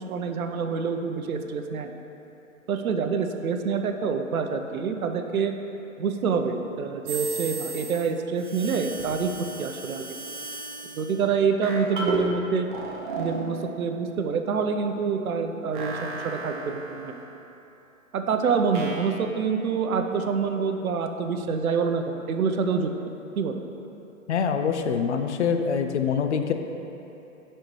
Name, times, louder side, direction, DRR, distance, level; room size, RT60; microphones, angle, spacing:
voice 1, 0.0-1.9 2.7-5.5 6.0-10.2 10.9-12.7 13.2-17.2 18.1-22.9 23.4-23.6, right 5 dB, 80° right, 5 dB, 0.7 m, -26 dB
sound 1, 7.1-8.1 8.4-11.1 11.6-12.3 12.7-13.5 15.7-17.3 18.7-19.1, right 3 dB, 35° right, 0.9 m, -34 dB
voice 2, 24.3-26.5, left 6 dB, 55° left, 6 dB, 0.5 m, -25 dB
10.0 x 4.4 x 3.1 m, 3.0 s
hypercardioid pair, 150°, 42 cm